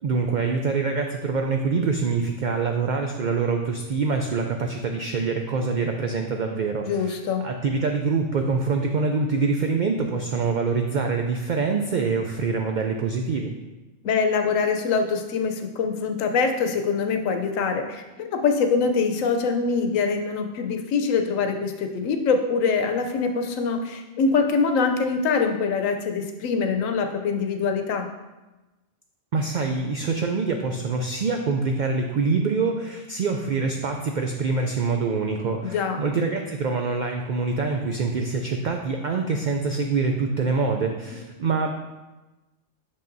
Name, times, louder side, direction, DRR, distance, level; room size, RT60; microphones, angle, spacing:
voice 1, 0.0-13.5 29.3-41.7, right 4 dB, 75° right, 3 dB, 0.4 m, -25 dB
voice 2, 6.8-7.4 14.0-28.1 35.6-36.0, left 5 dB, 85° left, 6 dB, 1.0 m, -24 dB
6.6 x 5.5 x 2.6 m, 1.1 s
omnidirectional pair, 1.3 m